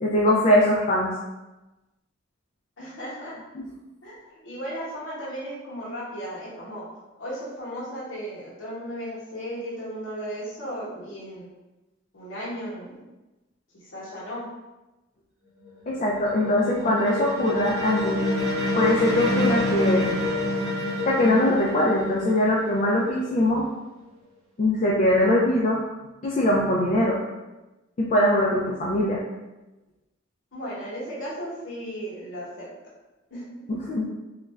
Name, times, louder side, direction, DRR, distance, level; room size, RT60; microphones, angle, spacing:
voice 1, 0.0-1.1 3.6-3.7 15.9-18.2 18.7-20.2 21.1-23.7 24.6-25.8 26.2-27.2 28.0-29.2 33.7-34.1, left 1 dB, 40° left, -4 dB, 0.3 m, -22 dB
voice 2, 2.8-3.4 4.0-6.9 7.2-11.5 12.1-13.0 13.8-14.5 30.5-32.7 33.3-33.5, equal, 70° left, -7 dB, 0.9 m, -35 dB
sound 1, 15.7-23.4, left 2 dB, 90° right, 0.8 m, -27 dB
2.4 x 2.1 x 3.2 m, 1.1 s
head